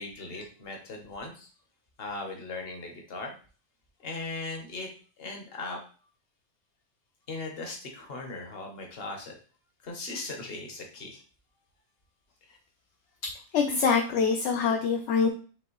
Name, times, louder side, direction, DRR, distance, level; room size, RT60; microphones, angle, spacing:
voice 1, 0.0-1.5 2.0-3.3 4.0-4.9 5.2-5.8 7.3-9.4 9.8-11.2 12.5-12.6 14.1-14.2, left 3 dB, 50° left, 2 dB, 1.1 m, -38 dB
voice 2, 13.5-15.3, left 5 dB, 65° left, 3 dB, 0.8 m, -24 dB
5.2 x 2.9 x 3.0 m, 0.39 s
omnidirectional pair, 1.4 m